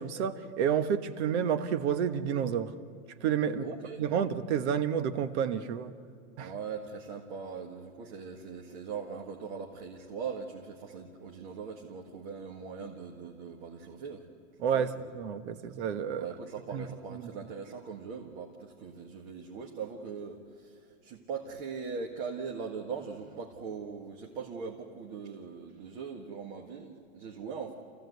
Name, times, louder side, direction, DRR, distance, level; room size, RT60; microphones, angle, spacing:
voice 1, 0.0-2.7 3.2-3.7 4.0-5.9 6.4-6.5 14.6-16.3 16.7-16.8 17.1-17.3, right 8 dB, 60° right, 10 dB, 1.3 m, -30 dB
voice 2, 3.6-4.0 6.4-14.3 14.7-15.0 16.1-27.7, right 5 dB, 40° right, 0 dB, 1.8 m, -40 dB
27.5 x 15.5 x 8.1 m, 2.2 s
supercardioid pair, 155°, 39 cm